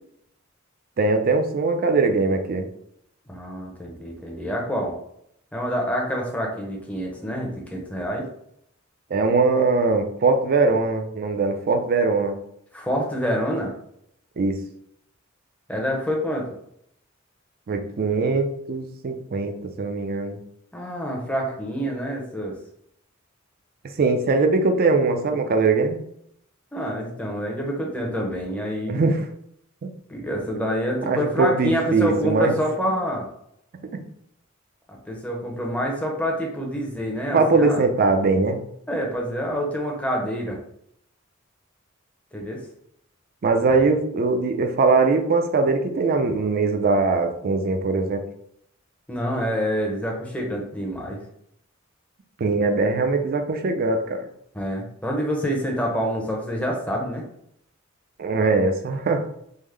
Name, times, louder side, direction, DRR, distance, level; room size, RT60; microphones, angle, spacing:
voice 1, 1.0-2.7 9.1-12.4 14.4-14.6 17.7-20.4 24.0-26.0 28.9-29.2 29.8-29.9 31.1-32.5 33.9-34.0 37.3-38.6 43.4-48.2 52.4-54.3 58.2-59.2, right 3 dB, 45° right, 6 dB, 0.4 m, -21 dB
voice 2, 3.3-5.0 5.5-8.3 12.7-13.7 15.7-16.5 20.7-22.6 26.7-29.0 30.1-33.3 34.9-37.8 38.9-40.6 42.3-42.6 43.7-43.8 49.1-51.2 54.5-57.2, equal, 5° left, -1 dB, 0.7 m, -27 dB
3.6 x 2.0 x 3.2 m, 0.72 s
head